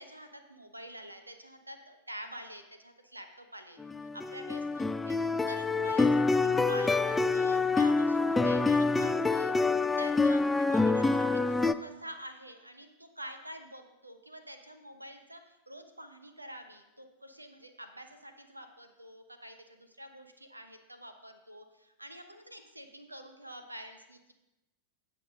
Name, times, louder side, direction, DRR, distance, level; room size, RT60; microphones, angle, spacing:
voice 1, 0.0-24.3, right 1 dB, 85° right, 7 dB, 1.0 m, -47 dB
sound 1, 3.8-11.7, left 3 dB, 10° left, 0.3 m, -26 dB
16.5 x 5.9 x 3.7 m, 0.96 s
figure-of-eight pair, 90°, 0 cm